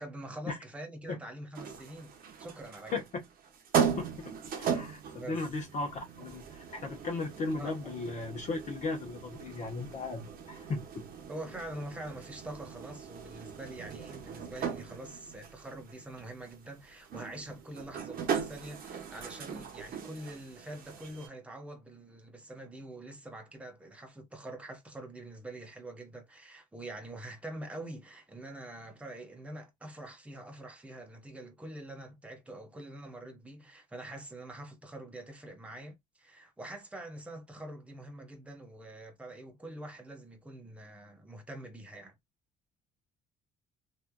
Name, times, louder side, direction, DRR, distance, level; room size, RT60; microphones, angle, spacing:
voice 1, 0.0-2.1 2.4-3.0 5.2-5.4 7.6-7.8 11.3-42.1, right 1 dB, 5° right, 0.9 m, -45 dB
sound 1, 1.5-21.3, right 7 dB, 60° right, 0.9 m, -38 dB
voice 2, 2.9-3.2 4.0-11.1, left 3 dB, 45° left, 1.0 m, -36 dB
3.1 x 2.6 x 2.2 m
cardioid pair, 110°, 17 cm